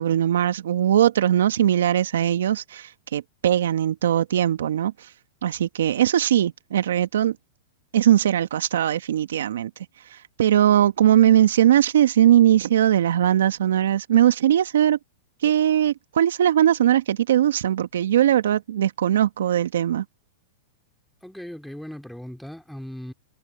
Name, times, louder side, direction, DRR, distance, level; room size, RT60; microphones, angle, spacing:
voice 1, 0.0-4.9 5.4-7.4 7.9-9.7 10.1-15.0 15.4-20.0, right 11 dB, 75° right, 1.6 m, -20 dB
voice 2, 21.2-23.1, equal, ahead, 2.8 m, -38 dB
hypercardioid pair, 120°, 0 cm